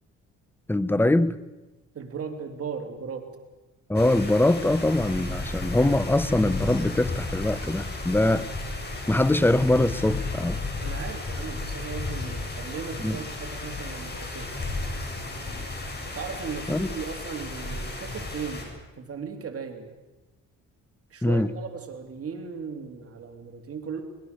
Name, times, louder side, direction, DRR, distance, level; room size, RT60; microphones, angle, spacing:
voice 1, 0.7-1.4 3.9-8.5 9.1-10.6 13.0-13.2 16.7-16.9 21.2-21.5, left 1 dB, 5° left, 16 dB, 1.0 m, -23 dB
voice 2, 1.9-3.3 10.8-14.5 16.1-19.9 21.1-24.0, right 6 dB, 50° right, 5 dB, 3.0 m, -37 dB
sound 1, 3.9-18.6, left 3 dB, 35° left, 7.3 m, -33 dB
24.0 x 21.0 x 6.7 m, 1.1 s
cardioid pair, 90°, 30 cm